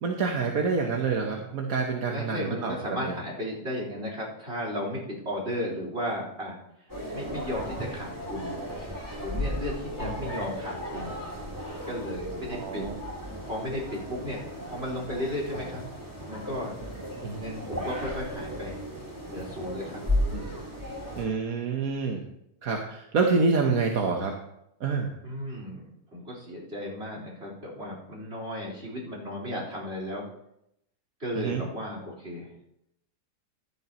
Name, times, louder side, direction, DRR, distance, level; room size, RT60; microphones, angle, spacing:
voice 1, 0.0-3.1 10.0-10.3 12.5-13.0 17.2-17.4 20.3-20.4 21.1-22.2 22.6-24.4 24.8-25.1 31.4-31.6, right 4 dB, 65° right, 1 dB, 1.5 m, -27 dB
voice 2, 2.1-6.6 7.1-8.6 9.2-11.2 11.8-12.9 13.5-14.4 14.7-15.8 16.3-16.7 17.3-18.8 19.2-20.0 25.2-25.8 26.1-30.2 31.2-32.5, left 1 dB, 40° right, -3 dB, 4.4 m, -34 dB
sound 1, 6.9-21.3, equal, 10° right, 3.5 m, -35 dB
15.0 x 12.0 x 3.0 m, 0.80 s
omnidirectional pair, 1.7 m